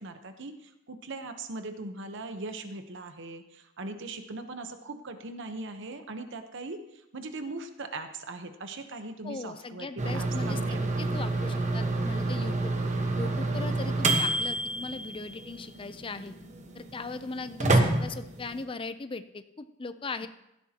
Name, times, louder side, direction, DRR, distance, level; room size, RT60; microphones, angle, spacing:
voice 1, 0.0-11.2 20.2-20.3, right 2 dB, 60° right, 8 dB, 1.0 m, -40 dB
voice 2, 9.2-12.7 13.2-16.3 16.7-20.3, left 3 dB, 25° left, 11 dB, 0.5 m, -39 dB
sound 1, 10.0-18.6, right 2 dB, 35° right, 1.2 m, -29 dB
16.5 x 11.5 x 2.9 m, 0.86 s
head